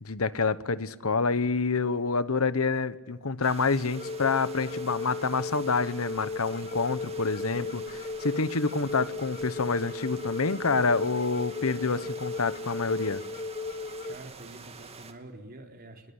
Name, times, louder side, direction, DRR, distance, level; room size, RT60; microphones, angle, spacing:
voice 1, 0.0-13.2, left 4 dB, 90° left, 15 dB, 1.1 m, -27 dB
sound 1, 3.4-15.1, right 4 dB, 30° right, 2.5 m, -48 dB
sound 2, 3.9-14.1, left 3 dB, 40° left, 1.5 m, -36 dB
voice 2, 14.0-16.1, right 2 dB, 45° right, 4 dB, 4.1 m, -46 dB
26.0 x 22.0 x 9.7 m, 1.3 s
head